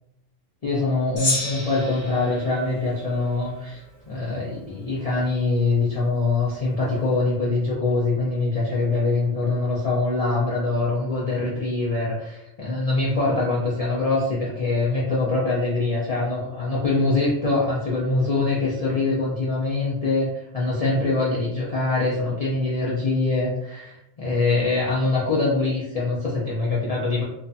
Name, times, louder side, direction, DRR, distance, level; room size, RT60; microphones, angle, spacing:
voice 1, 0.6-27.2, left 3 dB, 65° left, -7 dB, 0.3 m, -24 dB
Gong, 1.2-3.8, left 2 dB, 45° left, 0.8 m, -30 dB
2.5 x 2.3 x 2.5 m, 0.85 s
omnidirectional pair, 1.4 m